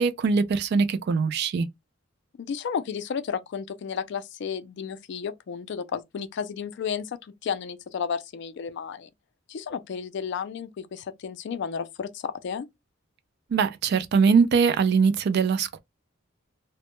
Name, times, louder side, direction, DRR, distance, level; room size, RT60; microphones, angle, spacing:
voice 1, 0.0-1.7 13.5-15.8, right 5 dB, 55° right, 0.3 m, -22 dB
voice 2, 2.4-9.1 9.5-12.7, left 6 dB, 60° left, 0.3 m, -32 dB
2.1 x 2.1 x 2.9 m
head